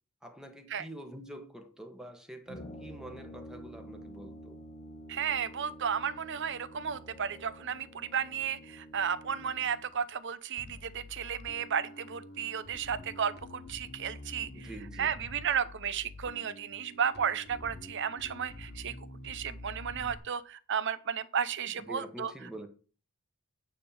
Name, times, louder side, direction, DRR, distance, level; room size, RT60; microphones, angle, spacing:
voice 1, 0.2-4.6 14.5-15.1 21.8-22.7, right 1 dB, 5° right, 1.2 m, -46 dB
Brass instrument, 2.5-10.0, equal, 30° left, 0.9 m, -49 dB
voice 2, 5.1-14.7 15.0-18.9 19.2-22.3, right 7 dB, 60° right, 0.7 m, -33 dB
Bass guitar, 10.6-20.2, left 1 dB, 50° left, 1.2 m, -47 dB
9.6 x 3.7 x 7.0 m
head